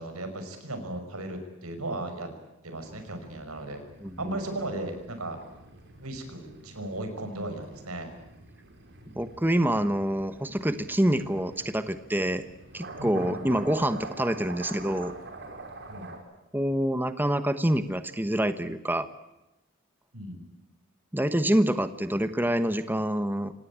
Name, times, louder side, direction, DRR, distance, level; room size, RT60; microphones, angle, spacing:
voice 1, 0.0-2.3 2.6-3.8 4.2-5.4 5.9-8.1 13.0-13.5 15.9-16.1 20.1-20.5, right 1 dB, 90° right, 7 dB, 5.8 m, -36 dB
sound 1, 2.8-16.2, right 2 dB, 50° right, 5.5 m, -46 dB
voice 2, 4.0-4.4 9.1-12.4 12.7-15.1 16.5-19.1 21.1-23.5, right 1 dB, 10° right, 11 dB, 1.1 m, -26 dB
26.0 x 18.5 x 8.8 m, 0.97 s
head